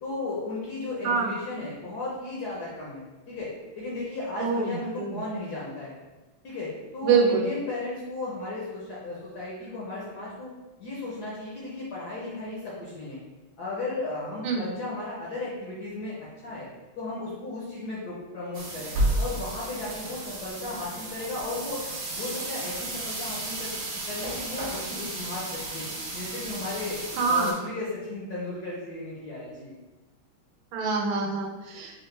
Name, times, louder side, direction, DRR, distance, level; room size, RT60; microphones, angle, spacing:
voice 1, 0.0-3.5 3.8-5.9 6.4-10.5 10.8-13.2 13.6-16.7 17.0-18.9 19.2-21.9 22.1-23.8 24.1-27.0 27.3-29.8, left 2 dB, 65° left, -5 dB, 1.0 m, -35 dB
voice 2, 4.4-4.7 5.0-5.2 7.0-7.4 14.4-14.7 27.2-27.6 30.7-31.9, right 5 dB, 80° right, 0 dB, 1.5 m, -25 dB
sound 1, 18.5-27.5, right 1 dB, 60° right, 1.1 m, -33 dB
4.7 x 2.1 x 3.2 m, 1.2 s
omnidirectional pair, 2.3 m